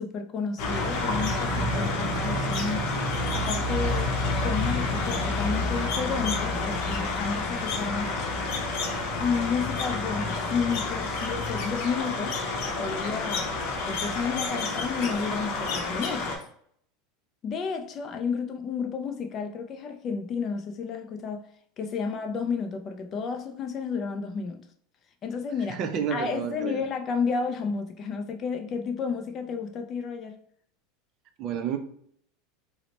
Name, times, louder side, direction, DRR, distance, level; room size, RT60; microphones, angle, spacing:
voice 1, 0.0-2.9 3.3-4.1 4.4-8.1 9.2-12.4 12.8-13.5 13.8-16.4 17.4-21.4 21.8-24.6 25.2-25.8 26.1-30.4, left 5 dB, 30° left, 0.4 m, -31 dB
sound 1, 0.6-16.4, left 2 dB, 50° left, 0.8 m, -29 dB
voice 2, 25.7-26.8 31.4-31.8, right 8 dB, 40° right, 0.4 m, -30 dB
4.0 x 2.1 x 3.1 m
supercardioid pair, 150°, 0 cm